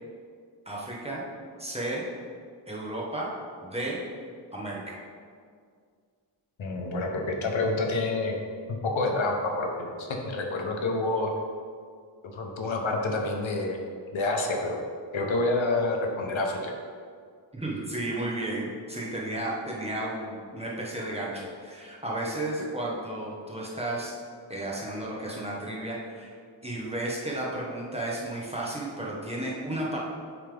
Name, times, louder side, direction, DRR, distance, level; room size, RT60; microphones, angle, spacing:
voice 1, 0.7-1.2 1.6-2.0 2.7-3.3 3.6-4.0 4.5-5.0 17.5-24.1 24.5-26.3 26.6-30.1, right 1 dB, 15° right, -5 dB, 1.0 m, -33 dB
voice 2, 6.6-8.3 8.7-11.3 12.3-13.8 14.1-14.8 15.1-16.7, left 2 dB, 75° left, 1 dB, 0.9 m, -28 dB
9.1 x 3.4 x 3.4 m, 2.1 s
wide cardioid pair, 120°, 47 cm